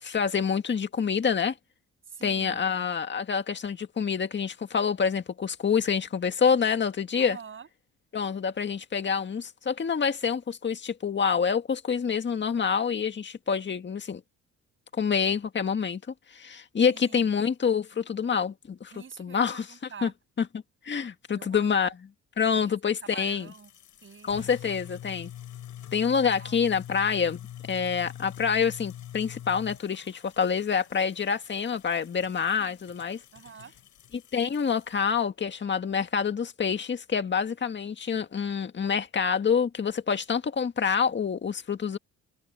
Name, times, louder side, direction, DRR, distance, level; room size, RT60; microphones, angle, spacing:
voice 1, 0.0-1.5 2.2-7.4 8.1-14.2 14.9-16.0 16.3-18.9 19.2-19.6 20.0-20.1 20.4-20.5 20.8-21.9 22.4-23.5 24.3-25.3 25.9-33.2 34.3-42.0, left 6 dB, 40° left, 1.9 m, -27 dB
voice 2, 2.1-2.9 7.2-7.7 16.8-17.3 18.9-20.1 21.3-21.8 22.5-23.7 24.0-24.5 26.4-26.6 32.6-32.8 33.3-33.7, right 6 dB, 40° right, 7.3 m, -46 dB
sound 1, 23.2-35.2, left 11 dB, 75° left, 5.4 m, -45 dB
open air
cardioid pair, 90°, 30 cm